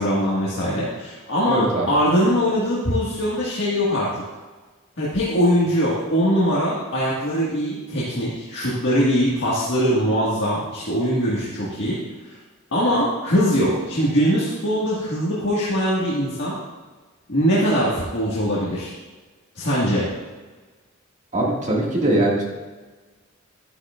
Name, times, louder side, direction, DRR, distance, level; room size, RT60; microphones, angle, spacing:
voice 1, 0.0-4.2 5.0-12.0 12.2-12.4 12.7-16.6 17.3-18.9 19.5-20.1, equal, 60° left, -7 dB, 1.7 m, -22 dB
voice 2, 1.5-1.9 21.3-22.4, right 1 dB, 35° right, -3 dB, 1.9 m, -21 dB
11.0 x 9.6 x 2.4 m, 1.3 s
head